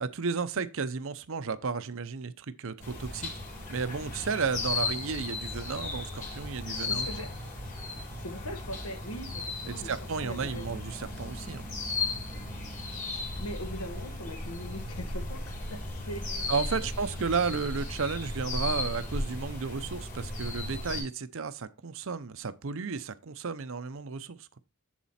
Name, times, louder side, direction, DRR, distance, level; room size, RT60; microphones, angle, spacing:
voice 1, 0.0-3.3 3.7-7.1 9.6-11.6 16.5-24.5, right 5 dB, 60° right, 0.6 m, -33 dB
sound 1, 2.8-21.0, left 2 dB, 35° left, 2.6 m, -36 dB
voice 2, 6.8-7.3 8.2-10.8 13.1-16.9, equal, 80° left, 1.4 m, -41 dB
7.5 x 7.2 x 4.2 m
head